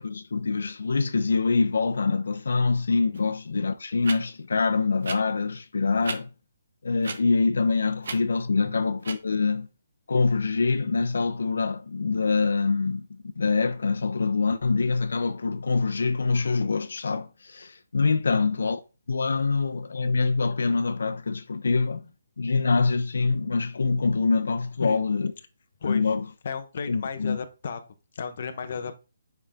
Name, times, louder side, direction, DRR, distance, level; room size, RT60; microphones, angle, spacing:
voice 1, 0.0-6.3 6.8-9.7 10.1-18.8 19.1-22.0 22.4-25.3 25.8-26.3 26.9-27.4, left 4 dB, 75° left, 1.0 m, -25 dB
sound 1, 3.1-3.2 4.0-4.2 5.0-5.2 6.0-6.2 7.0-7.2 8.0-8.2 9.0-9.2, right 4 dB, 60° right, 1.4 m, -34 dB
voice 2, 25.8-26.1 26.4-27.8 28.1-29.0, left 5 dB, 40° left, 1.2 m, -33 dB
9.3 x 5.9 x 3.8 m
hypercardioid pair, 175°, 0 cm